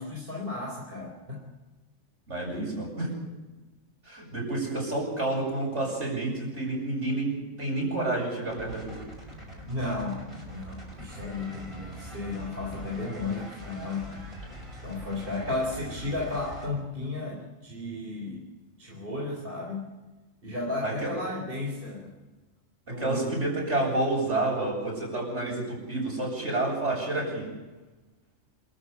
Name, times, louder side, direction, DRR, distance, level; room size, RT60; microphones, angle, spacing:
voice 1, 0.0-1.4 9.6-10.2 10.5-14.3 14.8-18.5 18.8-19.9 20.4-22.1 22.9-23.3, left 2 dB, 45° right, -2 dB, 3.9 m, -34 dB
voice 2, 2.3-3.1 4.1-9.0 20.8-21.1 22.9-27.5, right 2 dB, 60° right, -1 dB, 8.5 m, -29 dB
sound 1, 8.5-16.7, equal, 25° right, 5.8 m, -43 dB
28.0 x 14.0 x 8.2 m, 1.2 s
omnidirectional pair, 1.4 m